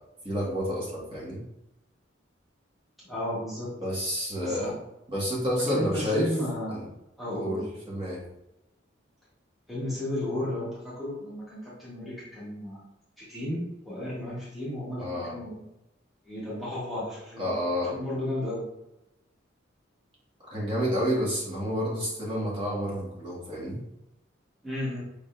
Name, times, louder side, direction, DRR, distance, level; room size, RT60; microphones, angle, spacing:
voice 1, 0.2-1.4 3.8-4.7 5.1-6.3 6.7-6.8 7.3-8.2 15.0-15.3 17.4-17.9 20.5-23.8, equal, 25° right, -6 dB, 1.5 m, -29 dB
voice 2, 3.0-3.7 4.4-4.7 5.7-6.8 7.2-7.7 9.7-12.8 13.2-15.6 16.2-17.6 17.8-18.7 24.6-25.0, left 1 dB, ahead, -10 dB, 1.2 m, -33 dB
5.2 x 3.8 x 2.5 m, 0.90 s
head